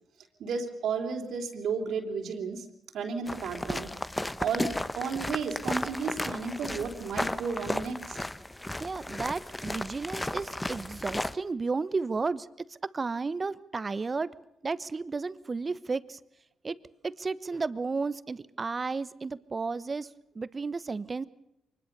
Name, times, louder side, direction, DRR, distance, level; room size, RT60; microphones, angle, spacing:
voice 1, 0.4-2.7 2.9-3.9 4.4-8.2, right 5 dB, 75° right, 3 dB, 3.6 m, -33 dB
sound 1, 3.3-11.3, left 1 dB, 15° left, 1.0 m, -34 dB
voice 2, 8.8-14.3 14.6-16.2 16.6-16.8 17.0-20.1 20.3-21.2, right 4 dB, 35° right, 16 dB, 1.1 m, -33 dB
24.0 x 20.5 x 6.9 m, 0.82 s
supercardioid pair, 60°, 0 cm